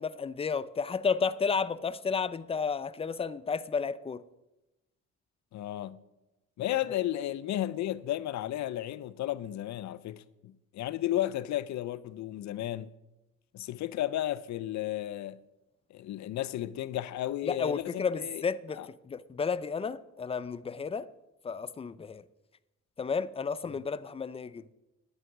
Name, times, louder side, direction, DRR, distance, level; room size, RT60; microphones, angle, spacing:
voice 1, 0.0-4.2 17.4-18.8 19.1-21.1 21.4-22.2 23.0-24.6, left 5 dB, 20° left, 0.4 m, -32 dB
voice 2, 5.5-6.0 6.6-12.9 13.5-15.4 15.9-18.4 18.7-18.9, left 13 dB, 65° left, 0.6 m, -33 dB
10.5 x 7.8 x 6.1 m
cardioid pair, 90°, 30 cm